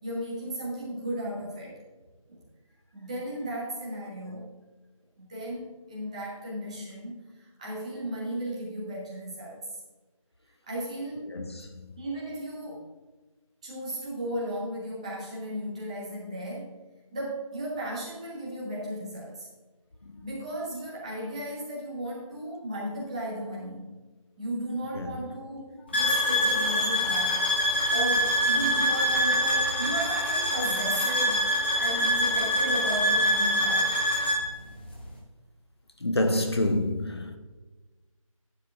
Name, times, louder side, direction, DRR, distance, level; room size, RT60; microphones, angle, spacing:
voice 1, 0.0-1.8 2.3-2.4 2.9-4.5 5.2-9.6 10.7-11.4 12.0-12.8 13.6-16.8 17.1-19.5 20.2-23.9 24.4-27.5 27.9-33.9, right 1 dB, 10° right, 1.3 m, -35 dB
voice 2, 11.3-11.9 20.0-20.2 24.9-25.2 26.0-26.1 28.7-28.9 31.6-31.8 32.1-32.3 36.0-37.4, left 1 dB, 50° left, 0.9 m, -29 dB
sound 1, 25.9-34.4, equal, 20° left, 1.1 m, -25 dB
11.5 x 9.5 x 2.5 m
figure-of-eight pair, 170°, 18 cm